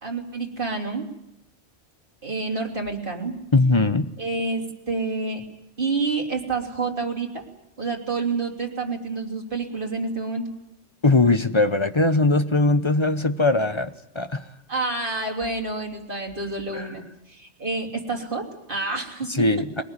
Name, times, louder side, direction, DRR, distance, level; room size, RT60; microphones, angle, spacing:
voice 1, 0.0-1.1 2.2-3.3 4.2-5.4 5.8-7.4 7.8-10.5 14.7-17.0 17.3-19.4, right 3 dB, 50° right, 1 dB, 3.4 m, -28 dB
voice 2, 3.5-4.1 11.0-14.4 16.7-16.9 19.3-19.8, left 2 dB, 25° left, 11 dB, 0.9 m, -20 dB
22.0 x 19.0 x 9.8 m, 0.82 s
omnidirectional pair, 1.2 m